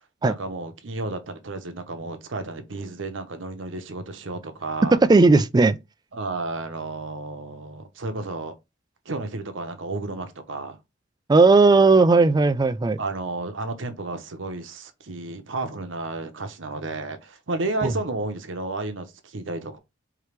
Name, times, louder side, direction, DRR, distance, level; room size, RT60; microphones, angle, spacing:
voice 1, 0.2-5.0 6.1-8.5 9.1-10.8 13.0-19.8, right 2 dB, 85° right, 0.9 m, -32 dB
voice 2, 5.1-5.8 11.3-13.0 17.8-17.9, right 3 dB, 20° right, 0.3 m, -16 dB
4.7 x 2.9 x 3.3 m
head